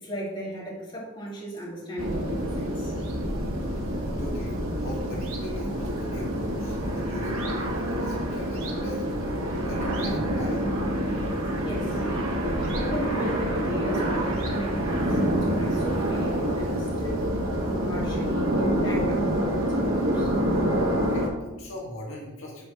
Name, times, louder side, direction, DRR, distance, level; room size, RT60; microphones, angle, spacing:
voice 1, 0.0-2.9 11.6-12.0 12.5-17.3 17.8-20.3, equal, 20° left, -6 dB, 2.2 m, -36 dB
sound 1, 2.0-21.3, equal, 75° right, 1.4 m, -27 dB
voice 2, 3.8-9.2 9.5-10.6 21.1-22.7, left 1 dB, 70° left, -3 dB, 1.6 m, -39 dB
6.4 x 4.3 x 5.9 m, 0.99 s
head